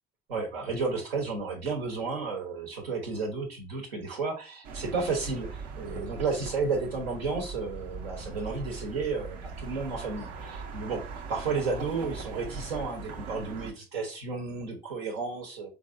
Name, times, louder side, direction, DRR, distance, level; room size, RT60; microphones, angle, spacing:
voice 1, 0.3-11.0 11.3-15.7, right 4 dB, 85° right, 0 dB, 1.0 m, -32 dB
sound 1, 4.6-13.7, right 5 dB, 65° right, 0.7 m, -41 dB
3.9 x 3.5 x 2.6 m, 0.31 s
hypercardioid pair, 45°, 29 cm